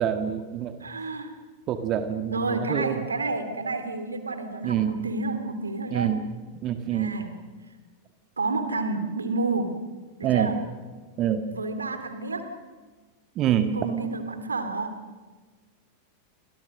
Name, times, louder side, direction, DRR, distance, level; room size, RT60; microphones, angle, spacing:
voice 1, 0.0-0.8 1.7-3.0 4.6-5.0 5.9-6.3 6.6-7.2 10.2-10.5 11.2-11.5 13.3-13.9, right 9 dB, 35° right, 8 dB, 1.7 m, -26 dB
voice 2, 0.8-1.3 2.3-6.1 6.9-7.3 8.4-9.7 10.2-10.6 11.5-12.5 13.7-15.0, right 3 dB, 75° right, 9 dB, 2.9 m, -30 dB
29.5 x 25.0 x 6.5 m, 1.4 s
figure-of-eight pair, 90°, 0 cm